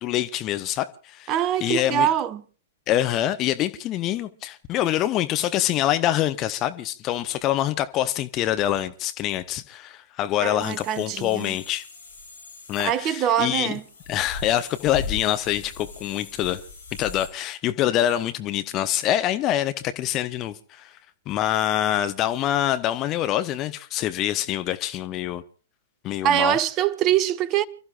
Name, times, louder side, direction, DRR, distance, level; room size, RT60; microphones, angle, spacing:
voice 1, 0.0-1.3 1.6-2.1 2.9-11.9 12.7-13.7 14.1-16.6 16.9-21.0 21.3-25.4 26.0-26.6, left 12 dB, 30° left, 0.9 m, -25 dB
voice 2, 1.3-2.4 10.4-11.5 12.8-13.8 26.2-27.6, right 10 dB, 30° right, 0.9 m, -23 dB
sound 1, 10.6-17.3, left 4 dB, 70° left, 5.3 m, -39 dB
30.0 x 13.5 x 2.5 m
figure-of-eight pair, 105°, 0 cm